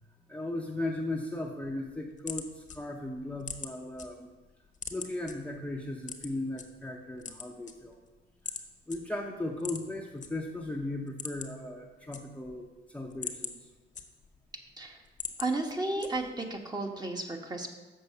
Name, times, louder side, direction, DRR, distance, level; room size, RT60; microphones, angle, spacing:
voice 1, 0.3-4.3 4.9-8.0 8.9-13.6, left 2 dB, 5° left, 0 dB, 0.8 m, -37 dB
sound 1, 1.9-4.1 4.4-5.3 6.0-6.6 7.1-8.1 8.4-8.6 8.9-9.0 9.6-10.3 10.6-10.7 11.0-11.6 11.9-12.6 13.0-14.5 14.9-15.5 16.0-16.4, left 6 dB, 40° left, 1.0 m, -40 dB
voice 2, 15.4-17.7, right 2 dB, 20° right, 3 dB, 1.3 m, -33 dB
6.9 x 5.5 x 6.7 m, 1.2 s
cardioid pair, 90°, 20 cm